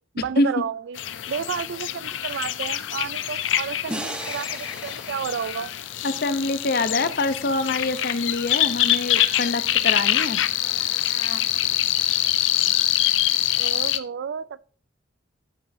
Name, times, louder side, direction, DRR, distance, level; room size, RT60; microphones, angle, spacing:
voice 1, 0.1-1.0 1.3-5.7 13.5-14.6, right 7 dB, 70° right, 0.3 m, -31 dB
sound 1, 0.9-14.0, left 13 dB, 80° left, 0.5 m, -25 dB
sound 2, 3.9-7.1, right 1 dB, 5° right, 0.9 m, -37 dB
voice 2, 6.0-10.4, left 2 dB, 55° left, 0.7 m, -25 dB
14.5 x 5.5 x 2.7 m
head